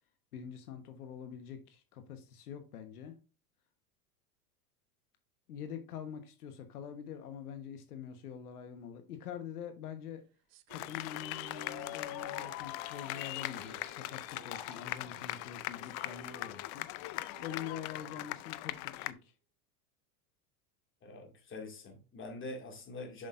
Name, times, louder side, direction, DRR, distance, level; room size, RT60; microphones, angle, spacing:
voice 1, 0.3-3.1 5.5-10.2 10.7-19.3, left 8 dB, 85° left, 1.3 m, -45 dB
sound 1, 10.5-15.2 15.4-15.5 15.8-18.5, right 10 dB, 40° right, 0.6 m, -56 dB
sound 2, 10.7-19.1, left 18 dB, 50° left, 0.5 m, -40 dB
sound 3, 12.2-18.2, left 9 dB, 70° left, 1.5 m, -53 dB
voice 2, 21.0-23.3, left 2 dB, 25° left, 2.3 m, -44 dB
7.7 x 6.5 x 2.5 m
hypercardioid pair, 110°, 44 cm